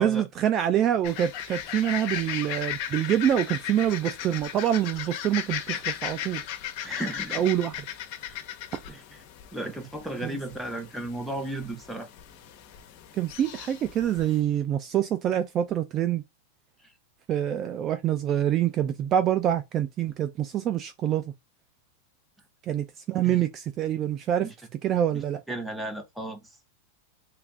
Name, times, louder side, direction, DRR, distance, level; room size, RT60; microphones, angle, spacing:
voice 1, 0.0-6.4 7.3-7.9 10.2-10.3 13.1-16.2 17.3-21.3 22.7-24.5 24.8-25.4, right 10 dB, 35° right, 0.4 m, -26 dB
sound 1, 1.0-14.4, left 11 dB, 50° left, 0.9 m, -37 dB
voice 2, 6.8-7.4 8.2-8.4 8.9-9.2 9.5-12.1 16.8-16.9 23.2-23.4 24.4-24.5 25.1-26.6, right 1 dB, 5° right, 0.9 m, -35 dB
3.4 x 2.4 x 3.4 m
hypercardioid pair, 125°, 0 cm